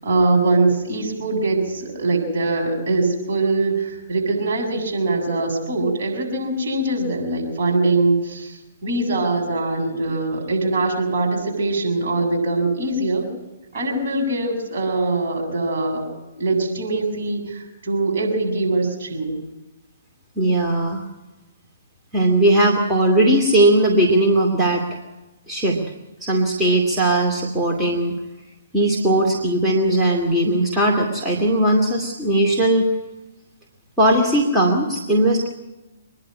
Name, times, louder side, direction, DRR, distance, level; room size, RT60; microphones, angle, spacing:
voice 1, 0.0-13.3 13.7-16.0 16.4-19.4, right 2 dB, 50° right, 0 dB, 7.5 m, -22 dB
voice 2, 20.4-21.0 22.1-24.8 25.5-25.8 26.2-28.2 28.7-32.9 34.0-35.5, right 1 dB, 10° right, -2 dB, 2.5 m, -18 dB
25.0 x 11.0 x 9.7 m, 1.0 s
figure-of-eight pair, 125°, 0 cm